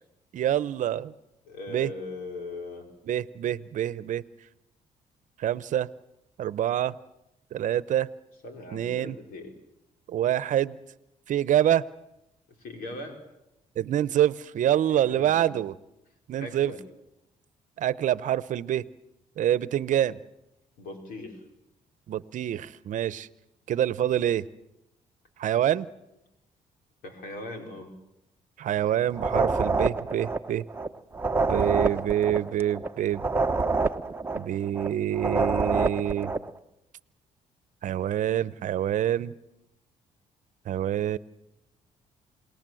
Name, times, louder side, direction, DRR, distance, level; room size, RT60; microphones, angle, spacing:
voice 1, 0.3-1.1 1.7-1.9 3.1-4.2 5.4-5.9 6.4-7.0 7.5-8.1 8.7-9.2 10.1-10.8 11.3-11.8 13.8-15.7 16.3-16.7 17.8-18.8 19.4-20.2 22.1-23.3 23.7-24.4 25.4-25.9 28.6-30.6 31.4-33.2 34.3-36.3 37.8-39.3 40.7-41.2, right 11 dB, 65° right, 17 dB, 0.9 m, -26 dB
voice 2, 1.4-2.9 8.4-9.5 12.6-13.2 14.9-15.5 16.4-16.8 20.8-21.4 27.0-27.9, left 2 dB, 85° left, 4 dB, 5.1 m, -39 dB
sound 1, 29.1-36.5, right 3 dB, 15° right, 1.0 m, -27 dB
28.0 x 19.5 x 7.8 m, 0.90 s
cardioid pair, 95°, 14 cm